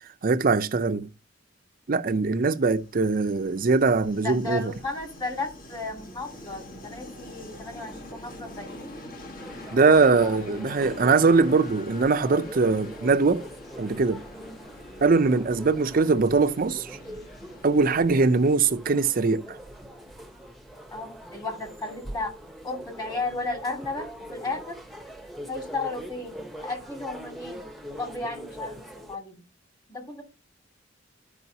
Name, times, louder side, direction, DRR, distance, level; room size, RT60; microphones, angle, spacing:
voice 1, 0.2-1.1 1.9-4.6 9.7-13.5 13.8-14.2 15.0-17.0 17.6-19.6, right 4 dB, 50° right, 0.5 m, -21 dB
Train, 2.3-20.1, left 1 dB, 50° left, 1.5 m, -45 dB
voice 2, 4.2-9.0 10.1-10.8 14.4-14.6 20.9-22.4 22.6-24.8 25.5-29.4 29.9-30.2, left 3 dB, 25° left, 2.4 m, -34 dB
sound 1, 9.4-29.2, equal, ahead, 0.9 m, -43 dB
12.0 x 4.9 x 2.8 m
head